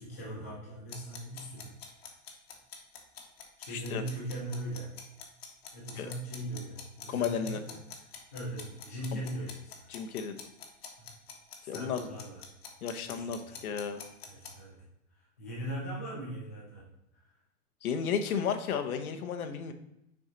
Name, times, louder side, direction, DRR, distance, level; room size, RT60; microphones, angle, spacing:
voice 1, 0.0-1.7 3.6-4.9 5.7-7.8 8.3-9.9 11.0-11.1 11.6-12.4 13.0-13.7 14.3-14.8 15.2-16.9, right 1 dB, 10° left, -7 dB, 0.4 m, -40 dB
sound 1, 0.9-14.5, left 7 dB, 45° left, 1.0 m, -46 dB
voice 2, 3.7-4.0 5.9-6.1 7.1-7.6 9.1-9.2 9.9-10.3 11.7-12.1 12.8-14.0 17.8-19.7, left 7 dB, 90° left, 6 dB, 0.9 m, -33 dB
6.3 x 4.4 x 3.8 m, 0.82 s
supercardioid pair, 180°, 42 cm